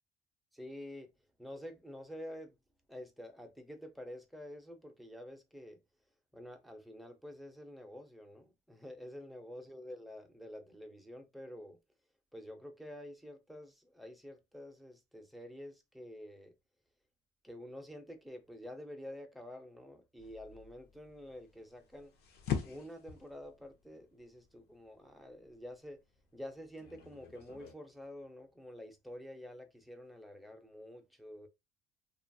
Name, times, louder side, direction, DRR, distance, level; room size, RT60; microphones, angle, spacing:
voice 1, 0.5-1.1 1.4-2.6 2.9-5.8 6.3-11.8 12.3-16.5 17.4-22.1 22.6-26.0 26.3-31.5, left 1 dB, ahead, 0.6 m, -48 dB
sound 1, 20.2-27.7, left 8 dB, 70° left, 0.7 m, -44 dB
2.8 x 2.3 x 2.6 m
cardioid pair, 110°, 17 cm